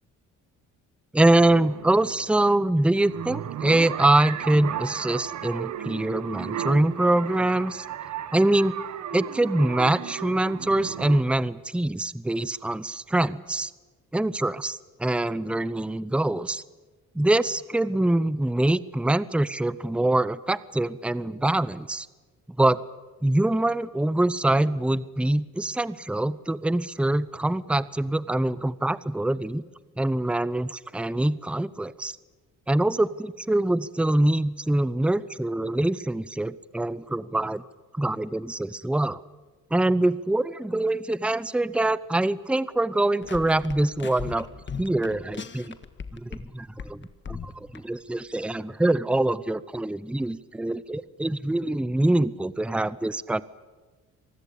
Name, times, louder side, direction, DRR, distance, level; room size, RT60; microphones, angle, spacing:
voice 1, 1.1-7.9 8.3-8.7 9.1-13.7 14.1-16.6 17.1-22.1 22.6-22.8 23.2-29.6 30.0-32.1 32.7-37.6 37.9-39.2 39.7-44.5 44.8-45.8 46.1-53.4, right 1 dB, 5° right, 17 dB, 0.7 m, -24 dB
sound 1, 1.4-11.2, right 9 dB, 65° right, 1.4 m, -35 dB
sound 2, 43.2-46.5 46.8-47.8, left 6 dB, 40° left, 1.6 m, -38 dB
26.5 x 20.0 x 8.5 m, 1.3 s
cardioid pair, 90°, 30 cm